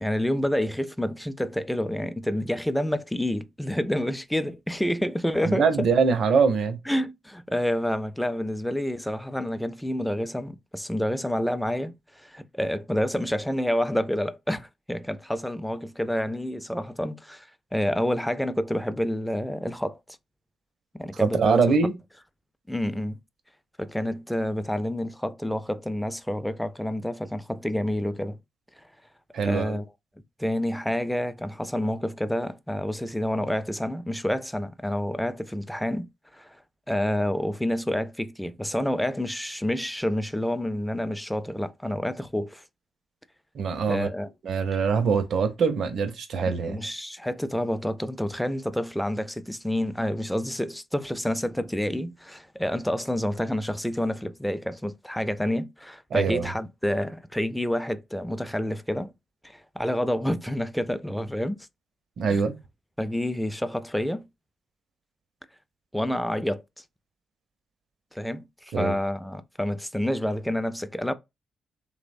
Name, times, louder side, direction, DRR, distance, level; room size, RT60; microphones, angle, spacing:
voice 1, 0.0-5.9 6.9-20.0 20.9-21.8 22.7-23.2 23.8-28.4 29.4-29.9 30.4-36.1 36.3-36.6 36.9-42.6 43.9-44.3 46.7-59.1 59.4-61.6 62.3-62.5 63.0-64.3 65.9-66.6 68.1-71.1, left 1 dB, 5° left, 0.4 m, -28 dB
voice 2, 5.4-6.8 21.2-21.9 29.3-29.8 43.5-44.1 44.4-46.8 56.1-56.5 62.2-62.6 68.7-69.0, right 5 dB, 70° right, 0.5 m, -23 dB
2.9 x 2.1 x 2.5 m
supercardioid pair, 50°, 0 cm